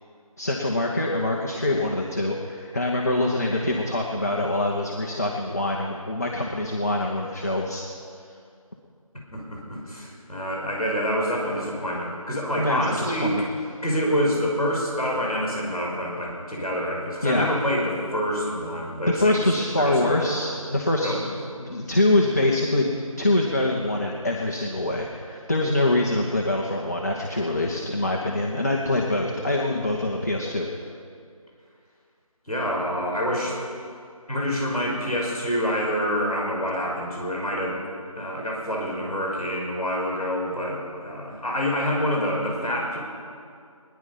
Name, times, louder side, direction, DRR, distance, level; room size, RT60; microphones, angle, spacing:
voice 1, 0.4-7.8 12.6-13.4 17.2-17.5 19.1-21.2 21.6-22.9 23.2-30.7, left 1 dB, 25° left, -1 dB, 0.9 m, -24 dB
voice 2, 9.3-13.3 13.8-20.4 21.0-21.3 32.5-33.6 34.3-37.8 38.1-43.0, equal, 10° left, -16 dB, 3.8 m, -27 dB
21.5 x 10.5 x 5.6 m, 2.3 s
figure-of-eight pair, 170°, 19 cm